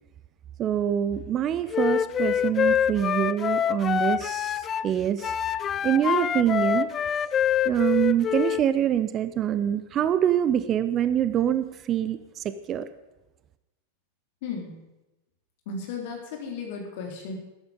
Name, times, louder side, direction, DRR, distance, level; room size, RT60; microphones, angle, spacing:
voice 1, 0.6-5.3 5.8-6.9 7.6-12.9, right 10 dB, 30° right, 13 dB, 0.7 m, -25 dB
Wind instrument woodwind instrument, 1.7-4.9 5.2-8.6, left 8 dB, 25° left, 0.4 m, -25 dB
voice 2, 14.4-14.8 15.7-17.4, left 5 dB, 50° left, 1 dB, 3.8 m, -35 dB
13.5 x 12.5 x 5.3 m, 1.0 s
figure-of-eight pair, 90°, 0 cm